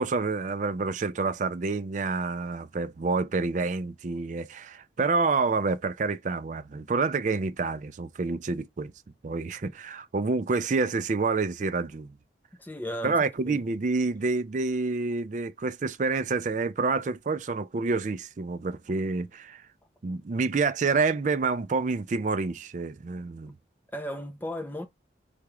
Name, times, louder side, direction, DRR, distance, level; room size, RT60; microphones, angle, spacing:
voice 1, 0.0-8.9 9.2-12.1 13.0-19.6 20.0-23.5, right 4 dB, 40° right, 0.4 m, -28 dB
voice 2, 12.6-13.2 13.5-13.6 23.9-24.9, equal, 10° left, 0.6 m, -35 dB
4.7 x 3.5 x 3.0 m
head